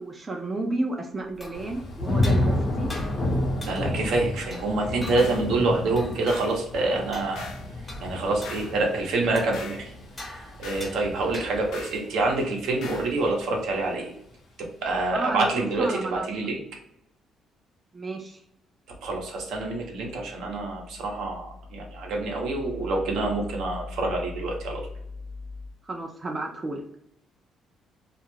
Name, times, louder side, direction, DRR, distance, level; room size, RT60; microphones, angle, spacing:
voice 1, 0.0-2.9 15.1-15.5 15.8-16.3 17.9-18.4 25.8-26.8, right 2 dB, 25° right, 2 dB, 0.4 m, -31 dB
sound 1, 1.2-11.9, left 1 dB, 20° left, 0.7 m, -45 dB
Thunder / Rain, 1.5-12.5 12.9-13.4, left 1 dB, 50° left, 0.8 m, -30 dB
voice 2, 3.7-7.5 8.0-9.9 10.2-14.1 14.6-16.6 19.0-21.5 21.7-24.8, right 2 dB, 80° right, 0 dB, 0.8 m, -27 dB
sound 2, 5.2-5.5 6.3-6.6 7.3-7.7 8.4-8.8 9.5-9.9 10.6-10.9 11.7-12.0 12.8-13.1, left 4 dB, 80° left, 0.5 m, -41 dB
2.4 x 2.1 x 3.1 m, 0.77 s
cardioid pair, 105°, 0 cm